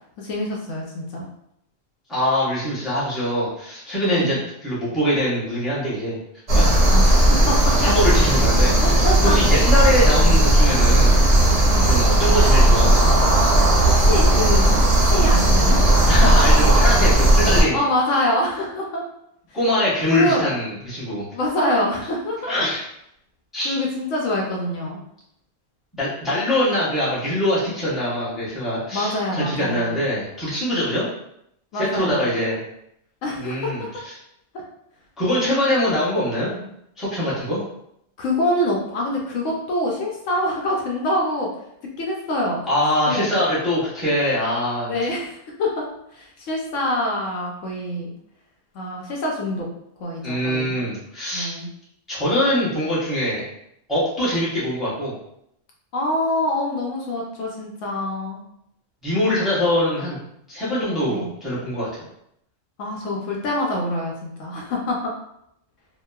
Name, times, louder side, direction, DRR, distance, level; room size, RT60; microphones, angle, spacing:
voice 1, 0.2-1.3 4.0-4.4 6.9-7.7 8.8-9.4 10.1-10.3 11.7-11.9 13.9-15.8 17.7-19.0 20.1-20.4 21.3-22.5 23.6-25.0 28.9-29.9 31.7-32.3 33.2-33.7 34.5-34.6 38.2-41.5 42.0-42.6 43.1-43.3 44.9-45.9 46.1-48.1 48.7-49.7 50.0-50.8 51.3-51.7 55.9-58.4 61.0-61.3 62.8-65.1, left 1 dB, 75° left, -1 dB, 0.9 m, -25 dB
voice 2, 2.1-6.2 6.5-6.7 7.8-11.2 11.8-13.1 16.1-17.8 19.5-21.2 22.4-22.8 23.5-23.8 26.0-31.1 31.7-32.6 33.4-34.1 35.2-36.7 37.0-37.6 42.7-44.9 50.2-51.5 52.1-53.4 53.9-55.1 59.0-60.2 60.5-61.9, equal, ahead, -10 dB, 0.7 m, -23 dB
sound 1, 6.5-17.6, right 1 dB, 40° right, 0.5 m, -16 dB
2.9 x 2.2 x 2.2 m, 0.76 s
omnidirectional pair, 1.3 m